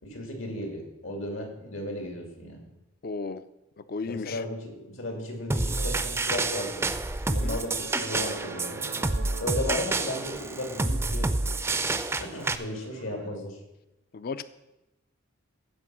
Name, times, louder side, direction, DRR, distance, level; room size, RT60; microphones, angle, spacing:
voice 1, 0.0-2.7 4.1-6.9 7.3-8.9 9.4-11.6 12.2-13.6, left 1 dB, 80° left, 2 dB, 2.6 m, -35 dB
voice 2, 3.0-3.4 3.8-4.4 7.3-7.6 14.1-14.4, left 4 dB, 45° left, 13 dB, 0.4 m, -34 dB
sound 1, 5.5-12.6, right 2 dB, 10° right, 0.4 m, -28 dB
sound 2, 5.8-13.4, right 4 dB, 70° right, 0.7 m, -45 dB
15.0 x 5.3 x 6.2 m, 0.96 s
head